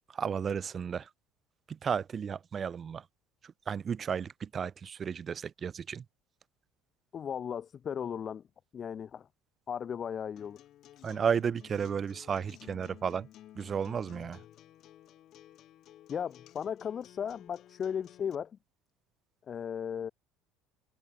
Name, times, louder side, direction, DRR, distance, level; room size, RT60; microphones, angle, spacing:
voice 1, 0.1-1.1 1.7-3.1 3.4-6.0 11.0-13.3 13.6-14.4, right 7 dB, 30° right, 0.5 m, -33 dB
voice 2, 7.1-8.4 8.7-9.3 9.7-10.6 16.1-18.5 19.5-20.1, left 8 dB, 35° left, 1.2 m, -36 dB
Acoustic guitar, 10.4-18.3, left 13 dB, 50° left, 1.7 m, -54 dB
cardioid pair, 120°, 0 cm